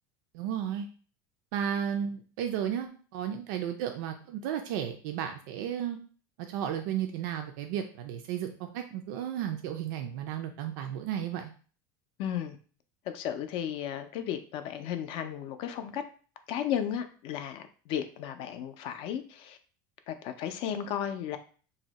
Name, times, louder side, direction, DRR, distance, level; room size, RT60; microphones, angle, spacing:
voice 1, 0.3-0.9 1.5-6.0 6.5-11.5, right 9 dB, 75° right, 5 dB, 0.4 m, -33 dB
voice 2, 12.2-12.6 13.1-16.0 16.5-19.6 20.1-21.4, left 9 dB, 55° left, 8 dB, 0.4 m, -34 dB
2.7 x 2.0 x 3.9 m, 0.40 s
supercardioid pair, 135°, 10 cm